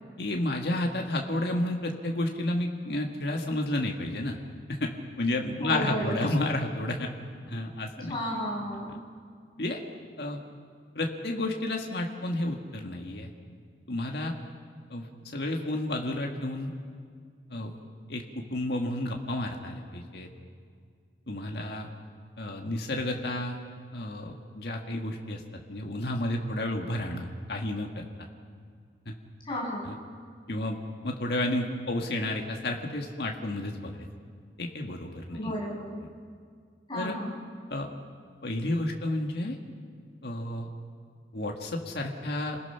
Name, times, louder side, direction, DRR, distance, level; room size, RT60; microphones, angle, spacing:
voice 1, 0.2-4.4 4.7-4.9 5.2-7.1 7.5-8.2 9.6-9.8 10.2-10.4 11.0-13.3 13.9-14.3 14.9-15.1 15.3-16.7 17.5-17.8 18.1-20.3 21.3-21.9 22.4-23.6 23.9-25.4 25.7-27.9 29.1-29.2 29.9-30.0 30.5-30.8 31.0-34.0 34.6-35.5 36.9-37.1 37.7-37.9 38.4-39.6 40.2-40.7 41.3-42.6, left 1 dB, 70° left, 1 dB, 1.8 m, -31 dB
voice 2, 5.6-6.3 8.0-9.0 29.4-29.9 35.3-36.0 36.9-37.5, equal, 30° left, -4 dB, 6.3 m, -33 dB
28.0 x 20.0 x 5.8 m, 2.1 s
head